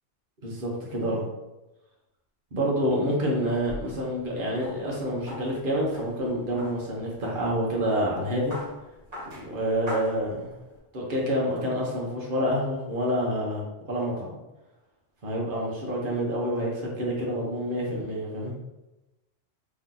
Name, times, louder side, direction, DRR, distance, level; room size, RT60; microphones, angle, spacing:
voice 1, 0.4-1.2 2.5-8.5 9.5-10.5 10.9-14.3 15.2-18.6, equal, 55° right, -3 dB, 1.2 m, -28 dB
sound 1, 3.2-10.8, left 1 dB, 40° right, 1.3 m, -43 dB
3.3 x 2.8 x 3.8 m, 1.0 s
omnidirectional pair, 1.1 m